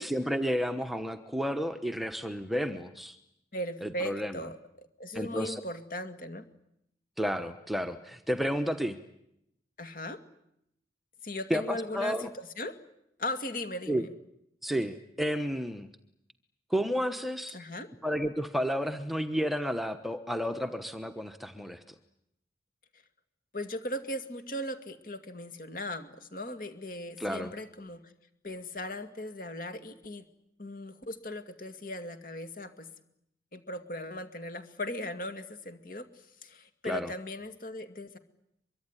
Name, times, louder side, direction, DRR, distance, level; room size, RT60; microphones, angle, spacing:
voice 1, 0.0-3.2 3.8-4.3 5.1-5.6 7.2-9.0 11.5-12.3 13.9-14.0 14.6-15.9 16.7-17.6 18.0-21.8 27.2-27.5 36.9-37.1, equal, ahead, 8 dB, 1.1 m, -31 dB
voice 2, 3.5-6.4 9.8-10.2 11.2-12.8 13.2-14.1 17.5-17.9 23.5-28.1 28.4-30.2 30.6-32.9 33.5-38.2, left 1 dB, 50° left, 9 dB, 2.4 m, -38 dB
24.0 x 24.0 x 9.9 m, 0.79 s
head